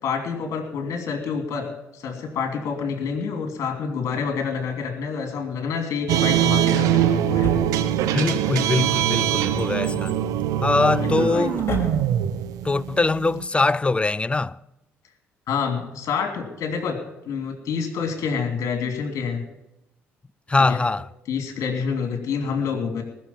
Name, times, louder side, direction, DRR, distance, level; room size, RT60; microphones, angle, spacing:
voice 1, 0.0-7.5 11.0-11.5 15.5-17.0 17.2-19.4 20.7-20.8 21.3-23.0, left 6 dB, 55° left, 2.9 m, -27 dB
sound 1, 6.1-13.4, right 11 dB, 65° right, 0.9 m, -22 dB
Drawer open or close, 7.4-8.3 8.9-12.4 12.7-12.8, left 2 dB, 40° left, 4.9 m, -34 dB
voice 2, 8.0-10.2 10.6-11.6 12.6-14.6 20.5-21.1, left 3 dB, 15° left, 0.5 m, -22 dB
20.0 x 6.7 x 7.2 m
hypercardioid pair, 50°, 6 cm